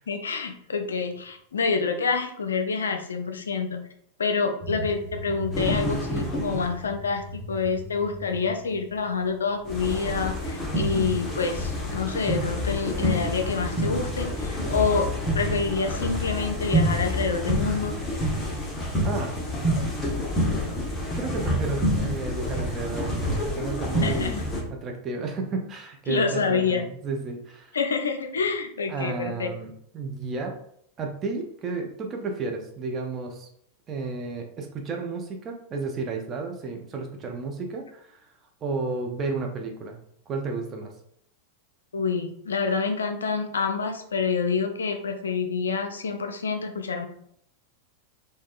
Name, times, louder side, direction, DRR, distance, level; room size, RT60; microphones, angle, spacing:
voice 1, 0.1-3.8 4.2-15.1 15.4-17.9 24.0-24.4 26.1-26.9 27.7-29.5 41.9-47.1, left 5 dB, 70° left, 5 dB, 0.4 m, -27 dB
sound 1, 4.6-10.1, left 1 dB, 85° right, 1.1 m, -39 dB
sound 2, 5.5-6.9 9.7-24.6, equal, 15° left, 0.8 m, -28 dB
voice 2, 19.0-19.3 21.1-24.3 24.7-27.8 28.9-30.6 31.0-33.5 33.9-38.2 38.6-40.0 40.3-40.9, right 4 dB, 25° right, 2 dB, 0.5 m, -32 dB
3.4 x 2.1 x 2.4 m, 0.69 s
figure-of-eight pair, 90°, 0 cm